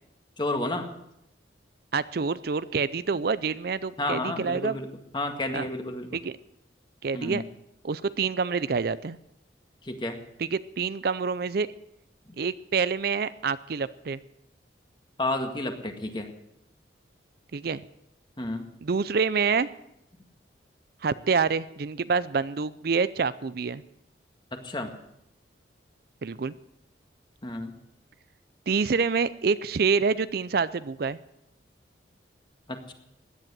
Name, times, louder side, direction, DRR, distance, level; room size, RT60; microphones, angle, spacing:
voice 1, 0.4-0.9 4.0-4.9 5.1-6.1 7.1-7.4 9.8-10.2 12.3-12.4 15.2-16.3 18.4-18.6 24.5-24.9 27.4-27.7 32.7-32.9, left 2 dB, 25° left, 5 dB, 1.9 m, -31 dB
voice 2, 1.9-4.8 5.5-5.7 6.1-6.3 7.0-7.4 7.8-9.2 10.4-11.7 12.4-14.2 17.5-17.8 18.8-19.7 21.0-23.8 26.2-26.5 28.7-31.2, right 5 dB, 55° right, 16 dB, 0.5 m, -27 dB
16.5 x 10.5 x 7.5 m, 0.80 s
head